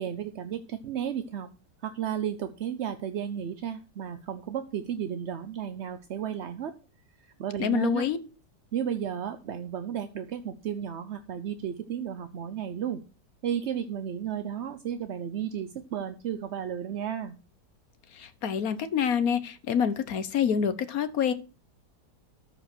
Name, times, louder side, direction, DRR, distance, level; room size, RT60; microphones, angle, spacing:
voice 1, 0.0-1.5 1.8-6.7 7.4-8.1 8.7-13.0 13.4-17.4, right 9 dB, 55° right, 0.8 m, -33 dB
voice 2, 7.6-8.2 18.1-21.3, left 7 dB, 60° left, 1.4 m, -27 dB
13.5 x 4.9 x 6.1 m
omnidirectional pair, 1.8 m